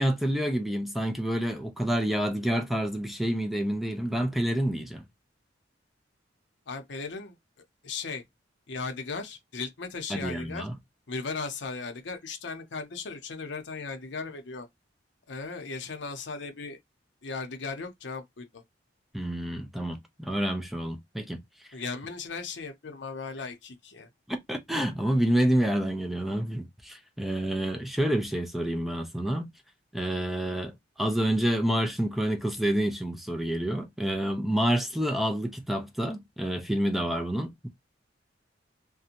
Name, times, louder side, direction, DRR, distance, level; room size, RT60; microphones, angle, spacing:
voice 1, 0.0-5.0 10.1-10.7 19.1-21.4 24.3-29.5 29.9-37.7, right 1 dB, ahead, 0.4 m, -28 dB
voice 2, 6.7-7.4 7.8-8.2 8.7-10.7 11.1-14.7 15.3-16.8 17.2-18.6 21.7-24.1, left 4 dB, 70° left, 0.7 m, -37 dB
2.5 x 2.2 x 2.8 m
head